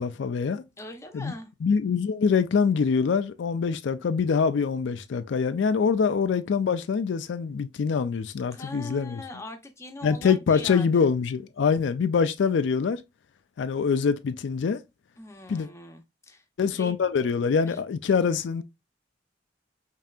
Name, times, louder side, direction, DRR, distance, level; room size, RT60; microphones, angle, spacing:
voice 1, 0.0-0.6 1.1-1.3 1.6-9.2 10.0-13.0 13.6-14.8 15.5-15.7 16.6-18.6, left 6 dB, 80° left, 0.4 m, -24 dB
voice 2, 0.8-1.5 8.5-11.1 15.2-16.9 17.7-17.8, left 2 dB, 15° left, 0.7 m, -42 dB
5.4 x 2.8 x 2.4 m
head